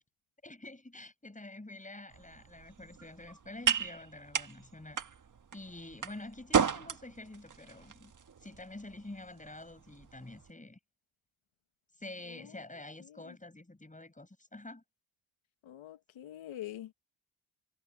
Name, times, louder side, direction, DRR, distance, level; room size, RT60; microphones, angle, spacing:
voice 1, 0.4-5.0 5.5-8.1 8.4-10.8 12.0-14.8, left 2 dB, 15° left, 6.9 m, -47 dB
sound 1, 2.1-10.5, right 6 dB, 40° right, 1.5 m, -36 dB
voice 2, 12.2-12.6 13.0-13.4 15.6-16.9, left 12 dB, 75° left, 1.6 m, -46 dB
supercardioid pair, 55°, 47 cm